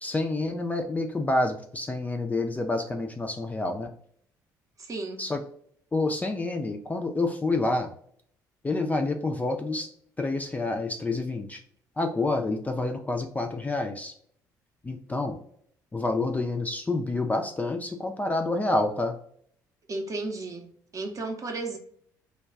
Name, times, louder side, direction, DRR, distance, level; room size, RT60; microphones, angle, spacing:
voice 1, 0.0-3.9 5.2-5.4 5.9-7.9 8.6-9.9 10.2-11.6 12.0-14.1 14.8-15.4 15.9-19.2, left 2 dB, 15° left, 0.4 m, -28 dB
voice 2, 4.8-5.2 19.9-21.8, right 3 dB, 35° right, 0.6 m, -34 dB
2.2 x 2.2 x 3.5 m
figure-of-eight pair, 50°, 10 cm